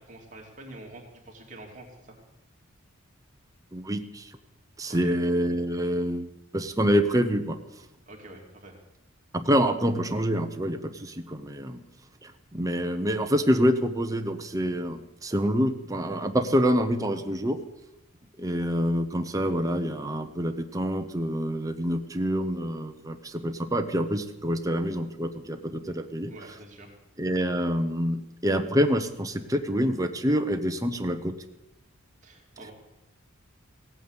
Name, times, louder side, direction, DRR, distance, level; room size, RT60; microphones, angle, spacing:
voice 1, 0.0-2.2 4.9-5.1 8.0-8.7 26.3-27.0 32.2-32.7, right 1 dB, 35° right, 0 dB, 2.9 m, -46 dB
voice 2, 3.7-4.3 4.8-7.6 9.3-11.8 12.2-17.6 18.4-26.3 27.2-31.4, equal, 15° right, 6 dB, 0.9 m, -26 dB
17.0 x 9.2 x 8.0 m, 0.92 s
head